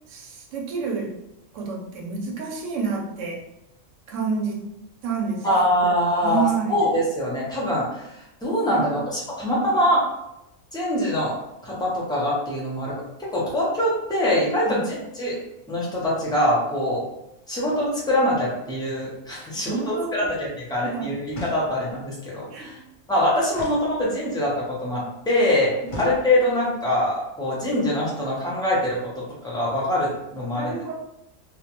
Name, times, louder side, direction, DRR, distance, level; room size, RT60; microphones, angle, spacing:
voice 1, 0.1-1.2 1.5-3.4 4.1-4.7 5.0-5.9 6.2-6.8 8.7-9.1 14.6-14.8 19.5-20.3 20.8-21.1 22.5-22.8 25.8-26.2 30.4-31.0, right 5 dB, 80° right, 0 dB, 0.9 m, -29 dB
voice 2, 5.4-10.0 10.7-11.3 11.6-13.0 13.3-15.4 15.7-17.0 17.5-22.8 23.1-25.7 26.0-30.7, left 1 dB, 5° left, -6 dB, 0.3 m, -24 dB
sound 1, 21.3-22.0 23.5-24.5 25.9-26.7, left 2 dB, 50° left, 0.6 m, -38 dB
2.3 x 2.1 x 2.8 m, 0.87 s
omnidirectional pair, 1.3 m